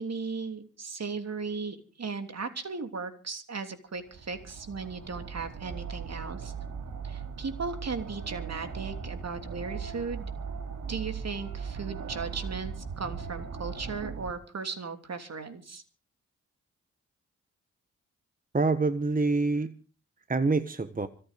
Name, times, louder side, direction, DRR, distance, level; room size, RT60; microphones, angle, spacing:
voice 1, 0.0-6.5 7.0-10.3 10.9-15.8, right 4 dB, 55° right, 7 dB, 3.1 m, -37 dB
sound 1, 4.0-14.3, right 6 dB, 75° right, 2.4 m, -38 dB
voice 2, 18.5-19.7 20.3-21.1, right 3 dB, 25° right, 12 dB, 1.3 m, -26 dB
26.0 x 9.0 x 5.2 m, 0.39 s
supercardioid pair, 45°, 31 cm